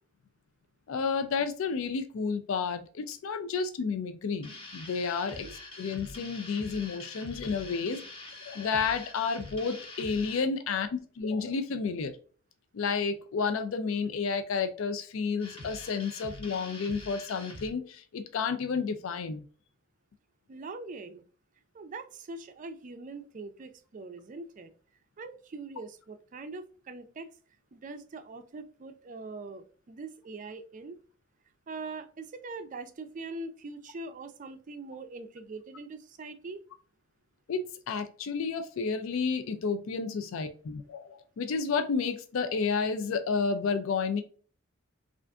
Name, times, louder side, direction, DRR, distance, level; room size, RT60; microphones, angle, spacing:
voice 1, 0.9-5.5 5.8-8.0 8.5-12.1 12.7-19.4 37.5-44.2, left 5 dB, 75° left, 9 dB, 0.4 m, -31 dB
sound 1, 4.4-10.5 15.4-17.7, left 2 dB, 25° left, 0.7 m, -45 dB
voice 2, 20.5-21.2 21.7-24.7 25.2-27.3 27.7-31.0 31.7-36.6, right 3 dB, 40° right, 9 dB, 0.4 m, -42 dB
3.3 x 2.5 x 2.4 m, 0.42 s
head